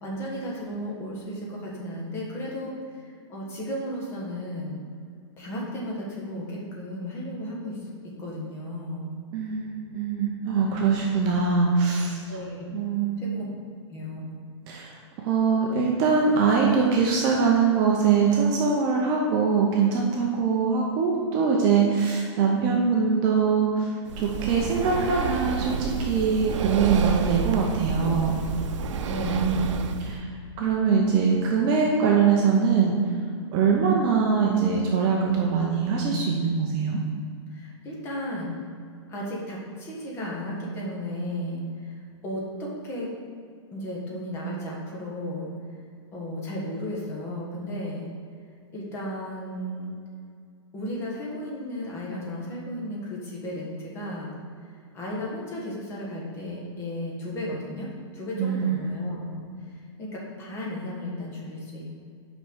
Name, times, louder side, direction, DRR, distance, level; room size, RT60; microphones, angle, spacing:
voice 1, 0.0-4.8 5.4-7.9 8.2-9.1 12.3-12.8 13.2-13.4 13.9-14.3 29.1-29.7 37.5-38.5 39.1-43.1 43.7-45.5 46.1-48.0 48.7-49.9 50.7-54.3 54.9-57.9 58.1-59.4 59.7-61.9, left 1 dB, 15° left, -3 dB, 1.4 m, -34 dB
voice 2, 9.3-12.2 12.7-13.3 14.7-14.9 15.2-23.9 24.2-28.4 29.3-30.3 30.6-32.9 33.5-37.0 58.4-59.0, right 5 dB, 25° right, -1 dB, 0.7 m, -23 dB
Breathing, 24.1-30.2, right 5 dB, 80° right, 0.7 m, -29 dB
6.1 x 5.5 x 6.2 m, 2.2 s
supercardioid pair, 170°, 15 cm